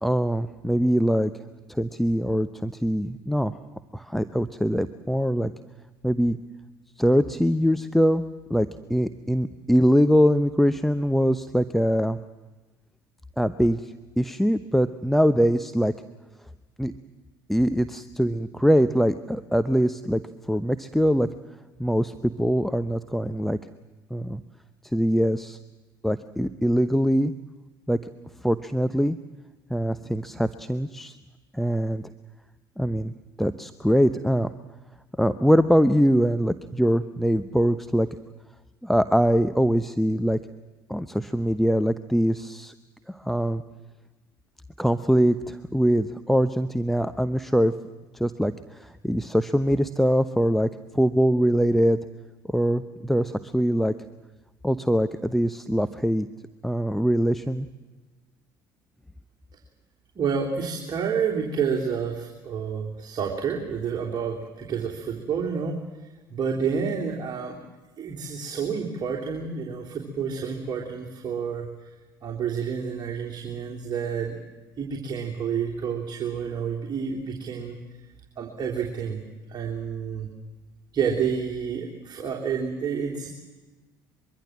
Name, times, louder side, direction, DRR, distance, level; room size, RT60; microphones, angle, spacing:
voice 1, 0.0-1.3 1.7-3.5 3.9-5.5 6.0-6.4 7.0-8.2 8.5-12.2 13.4-15.9 16.8-16.9 17.5-20.2 20.5-21.3 21.8-23.6 24.1-24.4 24.9-25.6 26.0-27.3 27.9-28.0 28.4-29.2 29.7-31.2 31.5-32.1 32.8-33.1 33.4-34.5 35.2-38.1 38.8-40.4 40.9-42.7 43.1-43.6 44.8-47.7 48.1-52.0 52.5-53.9 54.6-56.3 56.6-57.7, equal, ahead, 13 dB, 0.9 m, -23 dB
voice 2, 60.1-67.6 68.0-71.7 72.2-74.4 74.8-77.8 78.4-79.2 79.5-80.3 80.9-83.3, right 6 dB, 35° right, -1 dB, 3.4 m, -29 dB
24.0 x 23.0 x 7.6 m, 1.2 s
figure-of-eight pair, 55°, 11 cm